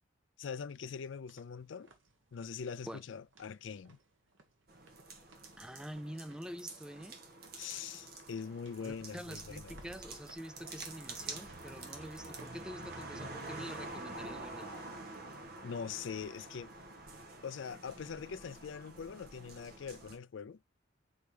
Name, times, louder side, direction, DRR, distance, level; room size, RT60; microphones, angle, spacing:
voice 1, 0.4-1.9 2.3-4.0 7.6-9.8 15.6-16.7 17.4-20.6, left 6 dB, 70° left, 0.4 m, -43 dB
sound 1, 0.8-14.9, right 3 dB, 75° right, 1.5 m, -65 dB
sound 2, 4.7-20.2, right 2 dB, 50° right, 1.6 m, -47 dB
voice 2, 5.6-7.2 8.8-14.7, equal, 5° right, 0.4 m, -46 dB
6.4 x 4.6 x 3.3 m
head